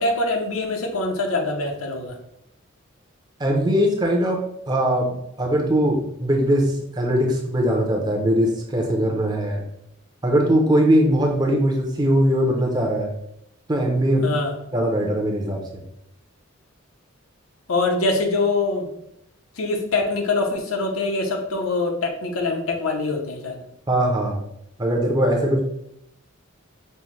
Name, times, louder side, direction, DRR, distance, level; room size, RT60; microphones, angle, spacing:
voice 1, 0.0-2.2 14.2-14.5 17.7-18.9 19.6-23.6, left 3 dB, 85° left, 2 dB, 0.7 m, -24 dB
voice 2, 3.4-9.6 10.2-13.1 13.7-14.3 14.7-15.8 23.9-24.4 24.8-25.6, equal, 20° right, 1 dB, 0.5 m, -21 dB
5.4 x 2.1 x 3.0 m, 0.79 s
head